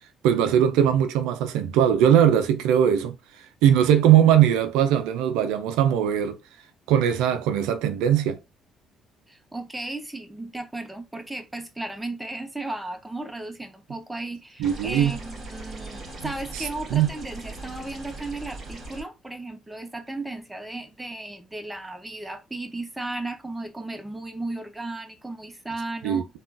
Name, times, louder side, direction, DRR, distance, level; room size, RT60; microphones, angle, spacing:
voice 1, 0.2-3.1 3.6-6.4 6.9-8.4 14.6-15.2 16.9-17.1 26.0-26.2, right 10 dB, 85° right, 0.4 m, -20 dB
voice 2, 9.3-26.3, right 2 dB, 10° right, 0.7 m, -35 dB
sound 1, 14.6-19.0, right 2 dB, 50° right, 1.7 m, -39 dB
3.6 x 2.3 x 2.5 m
supercardioid pair, 65°, 0 cm